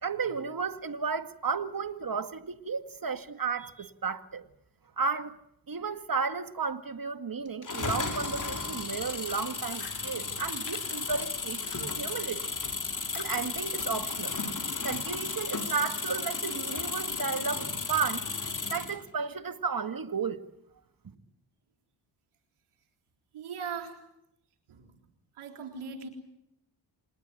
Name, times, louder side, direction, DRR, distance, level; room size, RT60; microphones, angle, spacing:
voice 1, 0.0-4.5 5.0-5.4 5.7-12.5 13.1-14.3 14.8-18.3 18.7-20.4, right 5 dB, 45° right, 2.1 m, -33 dB
sound 1, 7.6-19.0, left 4 dB, 40° left, 3.4 m, -34 dB
Fire, 8.6-12.3 12.6-15.4, left 5 dB, 60° left, 4.7 m, -50 dB
voice 2, 23.3-24.0 24.7-24.9 25.4-26.1, right 6 dB, 90° right, 4.0 m, -40 dB
27.0 x 20.5 x 9.2 m
supercardioid pair, 45°, 49 cm